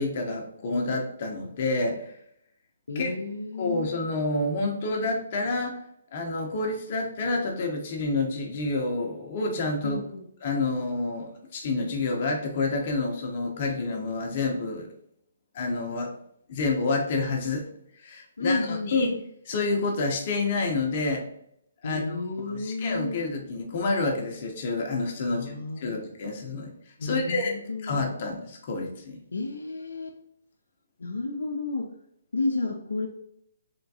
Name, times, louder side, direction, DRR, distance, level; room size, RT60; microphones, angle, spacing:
voice 1, 0.0-2.1 2.9-3.1 3.6-5.8 6.1-10.0 10.4-14.9 15.5-16.1 16.5-17.6 18.0-19.2 19.4-21.2 21.8-26.7 27.0-27.5 27.8-29.2, left 3 dB, 45° left, 2 dB, 0.7 m, -28 dB
voice 2, 2.9-3.9 9.8-10.3 18.4-19.0 21.8-23.2 25.3-26.0 27.0-28.1 29.3-30.1 31.0-31.9 32.3-33.1, left 3 dB, 80° left, 2 dB, 0.4 m, -31 dB
3.7 x 3.4 x 2.7 m, 0.72 s
hypercardioid pair, 145°, 0 cm